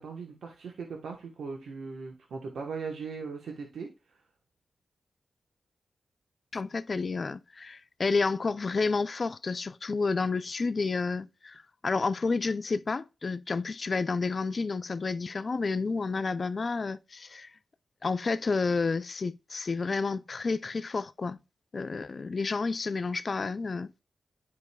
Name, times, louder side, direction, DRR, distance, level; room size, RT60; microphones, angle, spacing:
voice 1, 0.0-4.2, right 5 dB, 90° right, 1.1 m, -39 dB
voice 2, 6.5-17.5 18.0-21.4 21.7-23.9, left 4 dB, 50° left, 0.4 m, -30 dB
9.7 x 5.2 x 2.3 m
cardioid pair, 60°, 0 cm